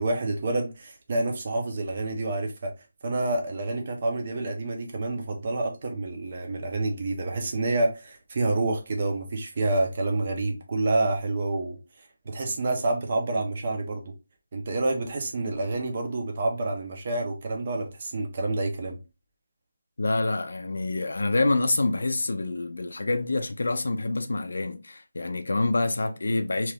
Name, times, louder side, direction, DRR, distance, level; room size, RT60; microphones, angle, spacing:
voice 1, 0.0-2.7 3.0-11.8 12.3-14.0 14.5-19.0, right 2 dB, 25° right, 0.6 m, -28 dB
voice 2, 20.0-26.7, left 2 dB, 65° left, 0.4 m, -27 dB
2.9 x 2.3 x 3.3 m
figure-of-eight pair, 180°, 0 cm